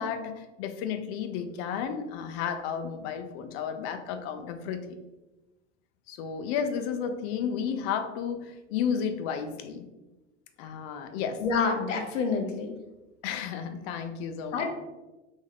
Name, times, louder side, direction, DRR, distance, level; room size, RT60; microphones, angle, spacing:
voice 1, 0.0-5.0 6.1-9.9 10.6-11.4 13.2-14.6, left 7 dB, 55° left, 7 dB, 0.7 m, -32 dB
voice 2, 11.4-12.7 14.5-14.6, left 5 dB, 85° left, 4 dB, 0.9 m, -27 dB
3.6 x 3.0 x 3.8 m, 1.1 s
hypercardioid pair, 90°, 37 cm